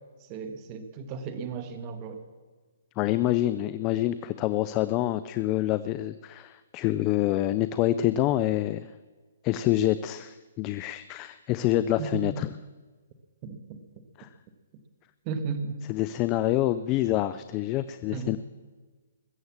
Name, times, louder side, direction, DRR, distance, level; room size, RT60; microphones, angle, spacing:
voice 1, 0.3-2.2 12.0-12.3 13.4-13.8 15.2-15.8 18.1-18.4, right 5 dB, 30° right, 8 dB, 1.5 m, -34 dB
voice 2, 3.0-8.9 9.4-12.5 14.2-14.3 15.9-18.4, left 14 dB, 30° left, 14 dB, 0.4 m, -26 dB
21.0 x 7.9 x 7.3 m, 1.4 s
hypercardioid pair, 145°, 0 cm